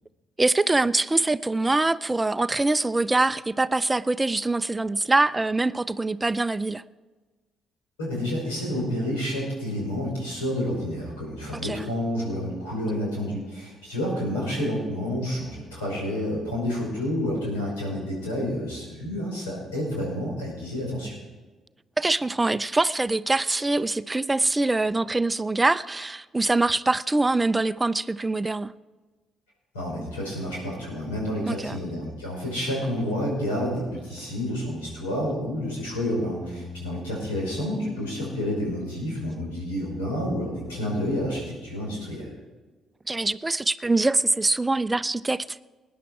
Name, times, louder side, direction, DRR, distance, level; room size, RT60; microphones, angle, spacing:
voice 1, 0.4-6.8 11.6-11.8 22.0-28.7 31.5-31.8 43.1-45.6, right 2 dB, 20° right, 0.5 m, -24 dB
voice 2, 8.0-21.2 29.7-42.3, equal, 90° left, 5.7 m, -29 dB
sound 1, 36.3-41.5, left 2 dB, 55° left, 2.7 m, -42 dB
20.0 x 10.0 x 4.8 m
hypercardioid pair, 50°, 0 cm